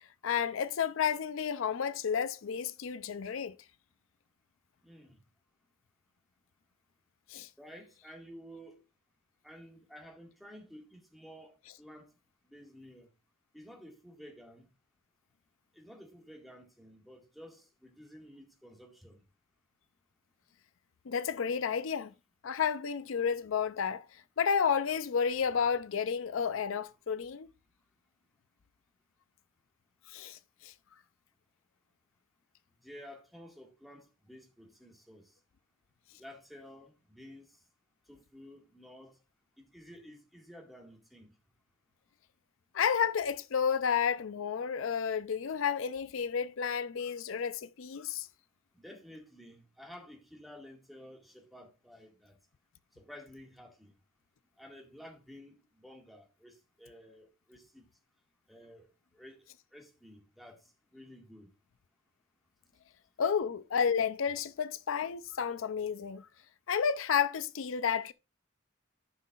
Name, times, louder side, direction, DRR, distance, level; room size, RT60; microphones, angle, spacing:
voice 1, 0.2-3.6 7.3-7.5 21.1-22.1 22.4-24.1 24.4-27.5 30.1-30.7 42.7-48.3 63.2-66.3 66.7-68.1, left 7 dB, 80° left, 0.5 m, -31 dB
voice 2, 4.8-5.2 7.6-8.8 9.4-12.1 12.5-13.1 13.5-14.7 15.7-19.2 32.8-35.3 36.1-37.5 38.1-39.2 39.6-41.3 48.7-52.3 52.9-53.9 54.6-57.9 58.5-58.9 59.1-59.5 59.7-61.5, equal, ahead, 1.8 m, -52 dB
14.0 x 5.7 x 2.4 m
head